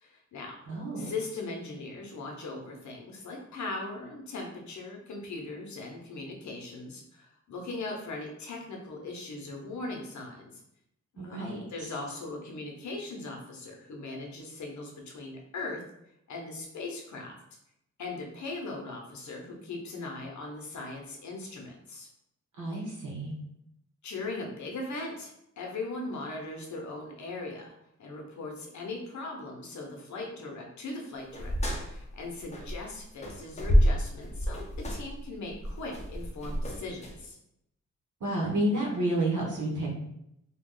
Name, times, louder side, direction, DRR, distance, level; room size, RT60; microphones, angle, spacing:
voice 1, 0.0-0.6 1.0-10.5 11.1-15.8 16.3-17.4 18.0-22.1 24.0-27.7 28.0-34.6 34.9-37.4, left 2 dB, 70° left, 0 dB, 0.8 m, -39 dB
voice 2, 0.7-1.1 11.2-11.6 22.6-23.3 38.2-39.9, right 1 dB, 85° right, -3 dB, 1.1 m, -30 dB
sound 1, 31.3-32.9 33.2-37.2, equal, 25° left, 0.5 m, -28 dB
2.9 x 2.3 x 3.7 m, 0.79 s
wide cardioid pair, 180°, 30 cm